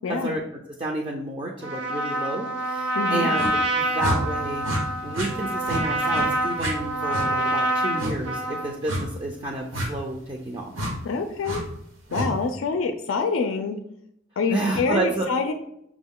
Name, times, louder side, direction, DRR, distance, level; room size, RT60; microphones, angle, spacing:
voice 1, 0.1-0.4 0.8-4.6 5.0-10.7 14.5-15.3, right 1 dB, 25° right, 0 dB, 0.4 m, -30 dB
Trumpet, 1.6-8.8, right 1 dB, 60° right, 0.8 m, -26 dB
voice 2, 3.0-3.3 11.0-11.6 12.1-13.8 14.4-15.5, left 4 dB, 80° left, 7 dB, 0.4 m, -26 dB
sound 1, 3.3-3.5 4.0-4.2 4.6-4.8 5.1-5.3 5.6-5.8 6.1-6.3 6.6-6.7 7.1-7.3 8.0-8.1 8.9-9.0 9.7-9.9 10.7-10.9 11.4-11.6 12.1-12.3, equal, 80° right, 1.1 m, -28 dB
5.9 x 2.2 x 3.6 m, 0.76 s
head